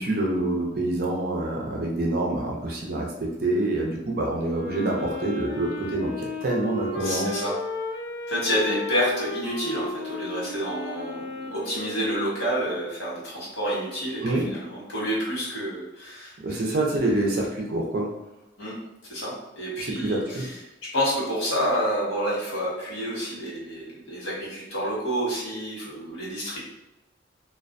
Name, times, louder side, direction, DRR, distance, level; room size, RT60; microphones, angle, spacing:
voice 1, 0.0-7.4 14.2-14.5 16.4-18.1 19.8-20.5, right 2 dB, 50° right, -1 dB, 0.5 m, -26 dB
Wind instrument woodwind instrument, 4.4-12.8, left 1 dB, 55° left, 0.5 m, -34 dB
voice 2, 7.0-7.6 8.3-16.8 18.6-18.8 19.1-20.5 20.8-26.6, equal, 85° left, -6 dB, 1.2 m, -29 dB
2.5 x 2.1 x 2.5 m, 0.94 s
head